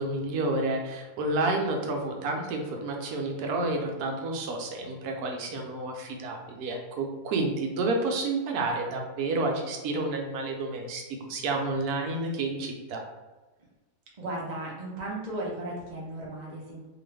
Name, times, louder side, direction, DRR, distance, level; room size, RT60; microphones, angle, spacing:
voice 1, 0.0-13.0, right 2 dB, 75° right, 2 dB, 1.1 m, -30 dB
voice 2, 14.2-16.9, right 1 dB, 45° right, -3 dB, 0.5 m, -35 dB
2.9 x 2.3 x 3.2 m, 1.2 s
omnidirectional pair, 1.7 m